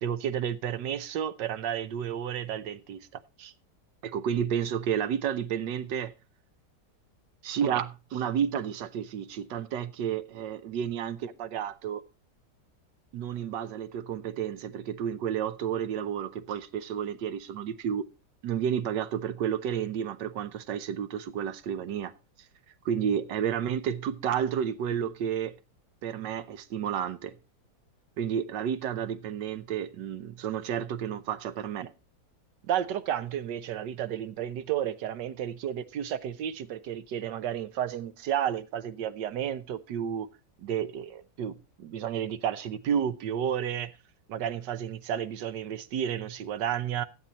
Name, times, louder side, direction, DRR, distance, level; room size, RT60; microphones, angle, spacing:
voice 1, 0.0-3.5 4.0-6.1 7.4-12.0 13.1-18.1 18.4-22.1 22.8-25.6 26.0-27.3 28.2-31.9 32.7-40.3 40.6-43.9 44.3-47.0, right 9 dB, 80° right, 1.4 m, -31 dB
12.0 x 9.0 x 4.1 m
omnidirectional pair, 1.9 m